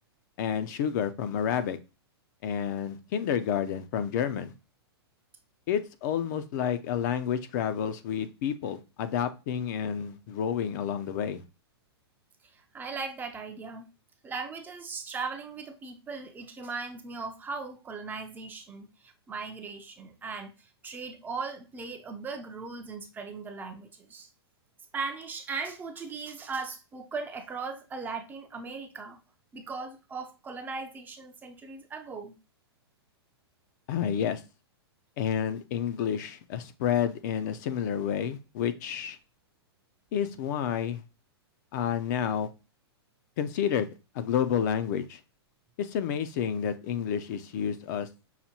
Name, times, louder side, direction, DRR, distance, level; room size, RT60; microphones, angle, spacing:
voice 1, 0.4-1.8 2.4-4.5 5.7-11.4 33.9-34.4 35.2-39.2 40.1-41.0 41.7-42.5 43.4-43.9 44.1-45.2 45.8-48.1, left 8 dB, 45° left, 0.5 m, -30 dB
voice 2, 12.4-13.9 14.2-24.3 24.9-29.2 29.5-32.3, right 4 dB, 15° right, 0.4 m, -38 dB
5.6 x 2.2 x 2.8 m
hypercardioid pair, 135°, 14 cm